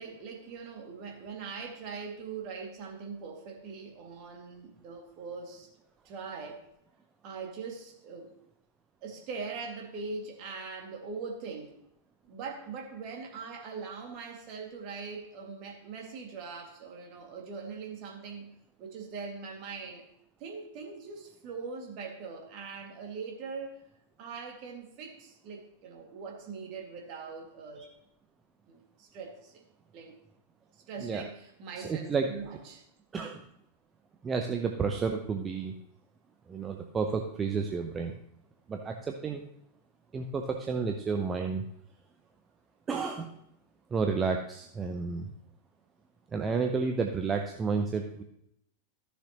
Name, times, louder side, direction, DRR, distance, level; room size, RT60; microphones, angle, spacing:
voice 1, 0.0-5.7 6.0-6.6 7.2-8.3 9.0-11.8 12.2-18.5 18.8-20.1 20.4-23.8 24.2-27.9 28.7-29.6 29.9-30.2 30.9-32.9, right 5 dB, 40° right, 1 dB, 2.2 m, -41 dB
voice 2, 31.8-32.3 33.1-33.4 34.2-35.7 36.5-38.1 38.7-39.4 40.1-41.6 42.9-43.4 43.9-45.3 46.3-48.2, right 5 dB, 20° right, 4 dB, 0.8 m, -31 dB
14.5 x 6.7 x 3.0 m, 0.77 s
figure-of-eight pair, 90°, 0 cm